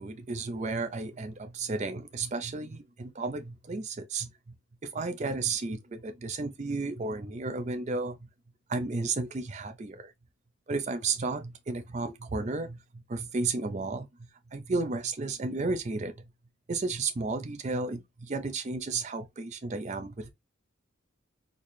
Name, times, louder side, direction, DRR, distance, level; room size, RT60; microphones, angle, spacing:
voice 1, 0.0-4.5 4.9-8.3 8.7-10.1 10.7-16.1 16.7-20.3, right 3 dB, 35° right, 0.4 m, -33 dB
4.1 x 2.1 x 3.1 m
head